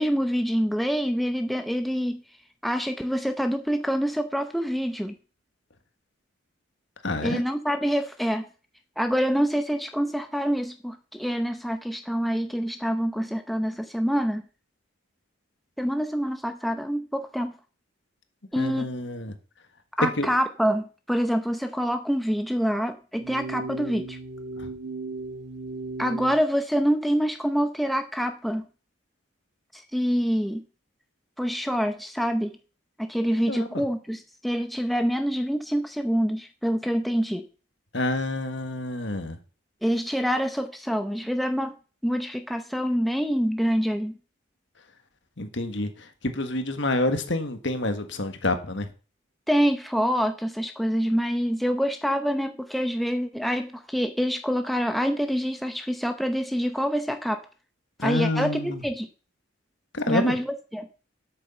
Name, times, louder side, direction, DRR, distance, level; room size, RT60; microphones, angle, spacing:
voice 1, 0.0-2.2 2.6-5.1 7.2-8.5 9.0-14.4 15.8-17.5 18.5-18.9 20.0-24.2 26.0-28.6 29.7-30.6 31.4-32.6 33.0-37.5 39.8-41.7 42.0-44.1 49.5-57.4 58.0-59.1 60.1-60.9, equal, ahead, 6 dB, 0.7 m, -26 dB
voice 2, 7.0-7.4 18.5-19.3 20.2-20.3 24.6-24.7 33.5-33.7 37.9-39.4 45.4-48.9 58.0-58.8 59.9-60.3, left 2 dB, 60° left, 7 dB, 1.6 m, -28 dB
sound 1, 23.2-26.4, right 3 dB, 60° right, 2.6 m, -36 dB
8.4 x 8.2 x 7.0 m, 0.37 s
head